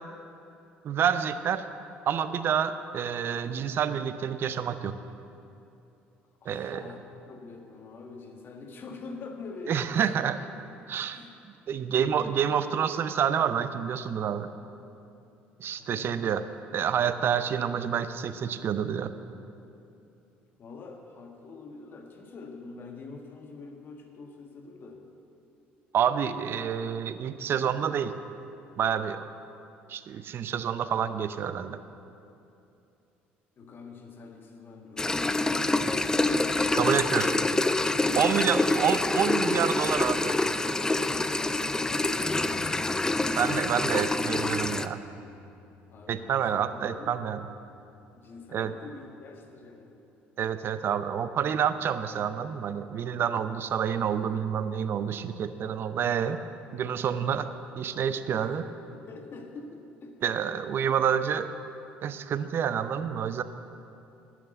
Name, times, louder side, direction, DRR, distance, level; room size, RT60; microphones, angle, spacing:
voice 1, 0.8-1.7 2.1-4.9 6.5-6.9 9.7-10.4 10.9-11.2 11.7-14.5 15.6-16.4 16.7-19.1 25.9-28.1 28.8-29.2 29.9-31.8 36.7-37.3 38.2-40.4 43.4-45.0 46.1-47.5 48.5-48.7 50.4-56.4 56.7-57.5 57.8-58.6 60.2-61.5 62.0-63.4, right 8 dB, 50° right, 12 dB, 0.6 m, -28 dB
voice 2, 6.4-7.0 7.3-10.1 11.1-11.4 12.0-12.4 15.8-16.3 20.6-25.0 33.6-35.6 41.0-43.2 43.5-43.9 45.9-47.4 48.1-50.0 58.3-60.4, left 3 dB, 45° left, 3 dB, 1.4 m, -45 dB
sound 1, 35.0-44.9, left 2 dB, 15° left, 0.4 m, -26 dB
sound 2, 42.2-49.1, left 3 dB, 30° left, 1.2 m, -49 dB
11.0 x 6.1 x 7.8 m, 2.7 s
supercardioid pair, 75°, 5 cm